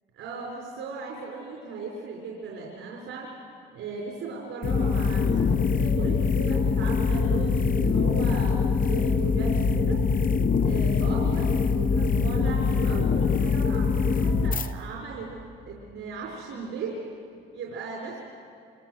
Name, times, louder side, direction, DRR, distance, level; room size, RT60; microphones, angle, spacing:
voice 1, 0.2-3.3 3.7-10.0 10.6-15.3 15.7-17.0 17.5-18.2, right 4 dB, 85° right, -2 dB, 4.8 m, -37 dB
sound 1, 4.6-14.7, left 5 dB, 45° left, 1.2 m, -23 dB
27.0 x 26.5 x 7.8 m, 2.4 s
cardioid pair, 90°, 20 cm